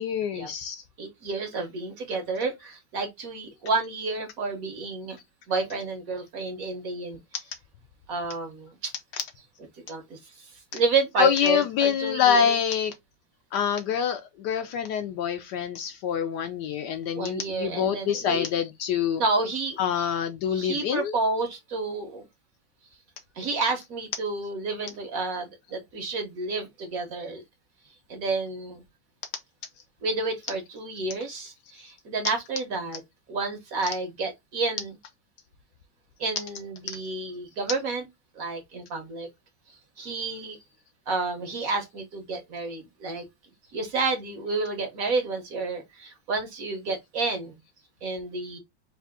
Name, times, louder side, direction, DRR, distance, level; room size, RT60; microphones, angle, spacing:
voice 1, 0.0-0.8 11.2-12.9 13.5-19.2 19.8-21.1, left 8 dB, 75° left, 1.1 m, -26 dB
voice 2, 1.0-5.2 5.5-7.2 8.1-8.9 9.9-12.6 17.2-18.5 19.2-19.8 20.5-22.3 23.4-27.4 28.1-28.8 30.0-33.0 33.3-34.9 36.2-38.1 38.4-39.3 40.0-40.6 41.1-43.2 43.7-47.5 48.0-48.6, right 3 dB, 55° right, 1.1 m, -30 dB
3.7 x 2.5 x 3.4 m
omnidirectional pair, 2.1 m